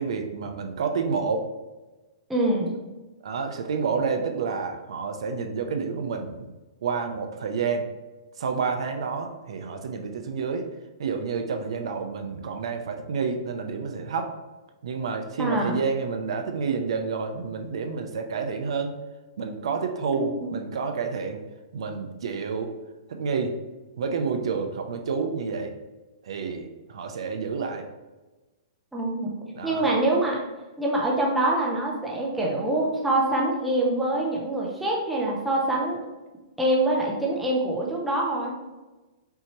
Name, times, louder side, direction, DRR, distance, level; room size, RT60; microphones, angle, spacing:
voice 1, 0.0-1.5 3.2-6.5 6.8-7.9 8.4-10.7 11.0-14.3 14.8-19.0 19.4-21.4 21.7-22.7 23.1-23.6 24.0-25.7 26.2-27.9 29.5-29.9, right 5 dB, 65° right, 5 dB, 0.6 m, -29 dB
voice 2, 2.3-2.7 15.4-15.8 20.1-20.6 28.9-29.3 29.6-30.4 30.8-36.0 36.6-38.6, right 1 dB, 5° right, -3 dB, 0.6 m, -25 dB
5.5 x 2.8 x 3.0 m, 1.1 s
hypercardioid pair, 170°, 3 cm